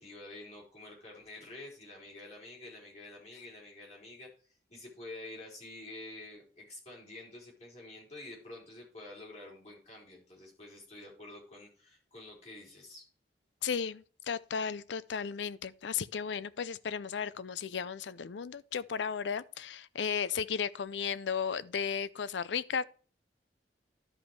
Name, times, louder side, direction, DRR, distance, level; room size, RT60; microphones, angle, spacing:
voice 1, 0.0-4.3 4.7-13.0, left 2 dB, 40° left, 4.7 m, -48 dB
voice 2, 13.6-22.8, left 6 dB, 85° left, 0.5 m, -35 dB
11.5 x 5.2 x 4.6 m
head